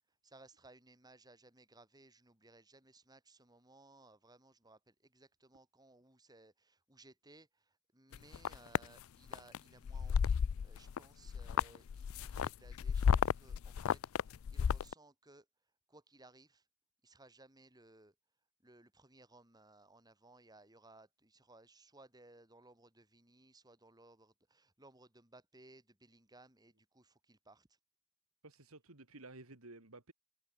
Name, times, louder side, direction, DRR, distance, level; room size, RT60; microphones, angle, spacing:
voice 1, 0.2-15.5 15.9-16.7 17.0-18.1 18.6-27.8, right 2 dB, 20° right, 6.8 m, -62 dB
sound 1, 8.1-8.8 9.3-9.6 9.9-11.0 11.3-14.9, left 7 dB, 75° left, 0.4 m, -32 dB
voice 2, 28.4-30.1, right 2 dB, 85° right, 2.9 m, -54 dB
head